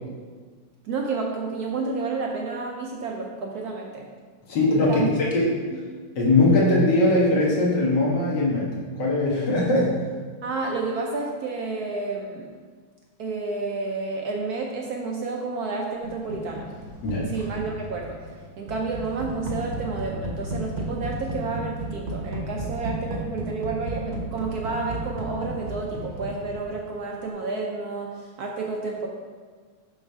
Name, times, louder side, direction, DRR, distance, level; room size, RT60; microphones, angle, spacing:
voice 1, 0.8-4.1 4.9-5.1 5.7-5.8 10.4-12.5 13.2-16.7 17.3-18.2 18.6-29.1, right 3 dB, 70° right, 0 dB, 0.9 m, -30 dB
voice 2, 4.5-5.5 6.2-8.7 9.0-9.9 17.0-17.3, left 2 dB, 65° left, -4 dB, 2.0 m, -20 dB
sound 1, 16.0-26.9, right 1 dB, 45° right, 0.6 m, -34 dB
7.1 x 3.3 x 5.7 m, 1.5 s
omnidirectional pair, 2.2 m